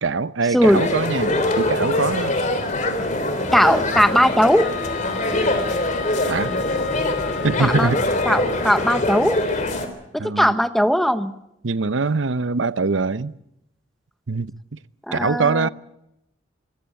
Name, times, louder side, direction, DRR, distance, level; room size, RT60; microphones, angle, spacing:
voice 1, 0.0-2.4 6.3-6.5 7.4-8.0 10.2-10.5 11.6-13.3 14.3-14.8 15.1-15.7, right 4 dB, 85° right, 0.8 m, -23 dB
voice 2, 0.5-0.8 3.5-4.7 7.6-7.9 8.3-9.4 10.1-11.3 15.1-15.7, equal, ahead, 0.9 m, -18 dB
sound 1, 0.6-9.9, left 2 dB, 40° left, 3.3 m, -23 dB
Wind instrument woodwind instrument, 4.6-9.3, left 7 dB, 80° left, 2.3 m, -34 dB
25.0 x 15.5 x 9.1 m
head